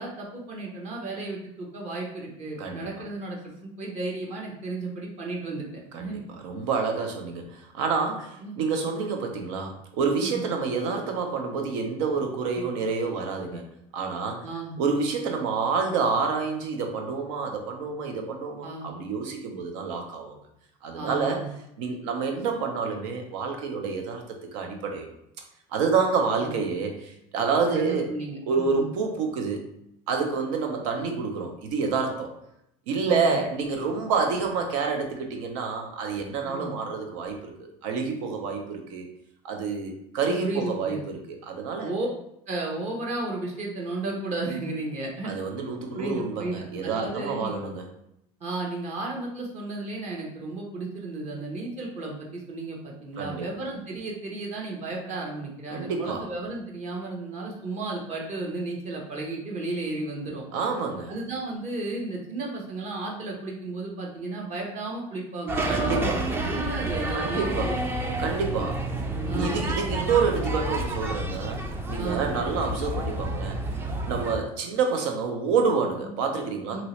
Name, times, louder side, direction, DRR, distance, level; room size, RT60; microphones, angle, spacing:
voice 1, 0.0-6.2 8.4-8.6 8.9-9.0 10.2-10.4 12.6-12.7 13.5-13.6 14.4-14.7 18.6-18.9 20.9-21.5 26.4-26.5 27.7-28.9 33.1-33.4 36.5-36.7 40.4-41.0 41.8-42.1 42.5-45.3 45.9-47.6 48.4-60.5 61.1-66.2 66.5-67.8 69.2-69.7 72.0-72.3 76.0-76.1 76.7-76.8, right 2 dB, 45° right, -1 dB, 1.0 m, -34 dB
voice 2, 6.4-13.6 13.9-14.4 14.8-20.4 20.8-21.5 21.8-24.2 24.5-25.1 25.7-28.1 28.5-29.6 30.1-32.3 32.9-39.1 39.4-41.9 45.2-47.9 53.2-53.5 55.7-56.3 60.5-61.1 65.7-66.2 67.1-67.7 68.2-68.8 69.3-73.6 74.0-76.8, right 5 dB, 80° right, 3 dB, 0.7 m, -28 dB
sound 1, 65.5-74.3, right 1 dB, 15° right, 0.4 m, -29 dB
2.9 x 2.7 x 3.1 m, 0.77 s
supercardioid pair, 105°, 16 cm